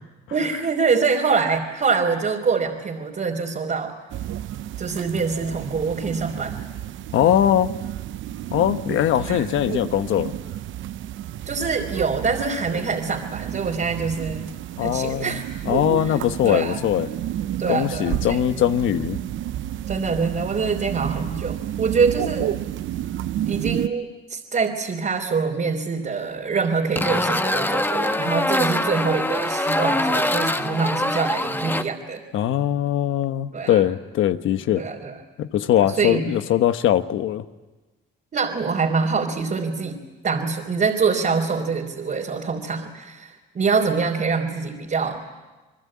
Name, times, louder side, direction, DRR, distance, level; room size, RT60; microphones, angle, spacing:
voice 1, 0.3-3.9 4.8-6.5 9.1-9.4 11.4-14.5 14.8-15.4 16.0-16.8 17.6-18.4 19.9-22.5 23.5-32.2 33.5-33.9 34.7-35.2 35.7-36.3 38.3-45.2, right 5 dB, 45° right, -1 dB, 3.3 m, -25 dB
sound 1, 4.1-23.9, right 12 dB, 75° right, 0.7 m, -31 dB
voice 2, 7.1-7.7 8.5-10.3 14.8-17.1 17.7-19.2 32.3-34.8 35.4-37.4, left 11 dB, 80° left, 10 dB, 1.2 m, -21 dB
sound 2, 27.0-31.8, left 1 dB, 10° left, 1.3 m, -23 dB
28.5 x 20.5 x 8.7 m, 1.2 s
cardioid pair, 90°, 20 cm